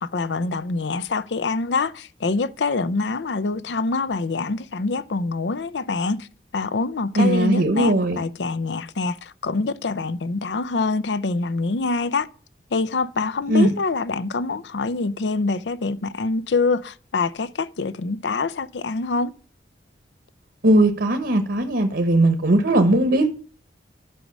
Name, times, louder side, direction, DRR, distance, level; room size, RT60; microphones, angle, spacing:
voice 1, 0.0-6.3 6.5-12.3 12.7-19.3, left 3 dB, 80° left, 0.6 m, -25 dB
voice 2, 7.2-8.2 13.5-13.7 20.6-23.3, right 1 dB, 70° right, 1.2 m, -18 dB
11.0 x 6.2 x 5.3 m
head